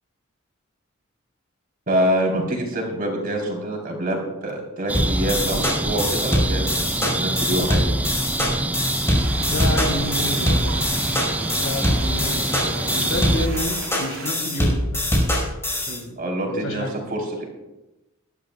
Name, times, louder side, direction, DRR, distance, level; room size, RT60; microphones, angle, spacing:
voice 1, 1.9-7.9 16.2-16.8 17.1-17.4, right 1 dB, 45° right, 0 dB, 4.0 m, -25 dB
sound 1, 4.9-16.0, left 1 dB, 10° left, 5.1 m, -23 dB
sound 2, 4.9-13.5, right 2 dB, 5° right, 0.3 m, -26 dB
sound 3, 9.1-14.3, right 4 dB, 70° right, 2.7 m, -36 dB
voice 2, 9.5-11.2 11.5-15.1 15.9-17.0, left 1 dB, 85° left, 3 dB, 3.1 m, -30 dB
21.5 x 12.0 x 2.4 m, 0.98 s
head